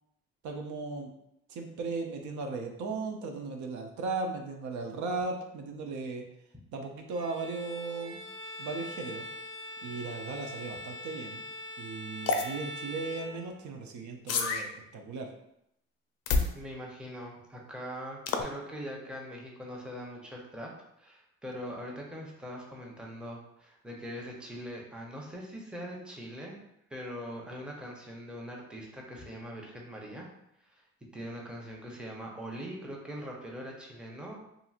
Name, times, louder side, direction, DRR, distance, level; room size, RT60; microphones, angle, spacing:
voice 1, 0.4-1.1 1.5-6.2 6.7-8.2 8.6-9.3 9.8-11.4 11.8-15.3 27.4-27.5, right 3 dB, 75° right, 3 dB, 0.5 m, -37 dB
Bowed string instrument, 7.1-13.9, left 1 dB, 40° right, 0.8 m, -43 dB
sound 1, 12.3-12.5 14.3-14.7 16.3-16.5 18.3-18.4, left 4 dB, 55° left, 0.4 m, -27 dB
voice 2, 16.5-20.7 21.0-26.6 26.9-30.3 30.6-30.8 31.1-34.5, equal, 5° right, -2 dB, 0.6 m, -42 dB
2.9 x 2.6 x 2.4 m, 0.79 s
cardioid pair, 90°, 30 cm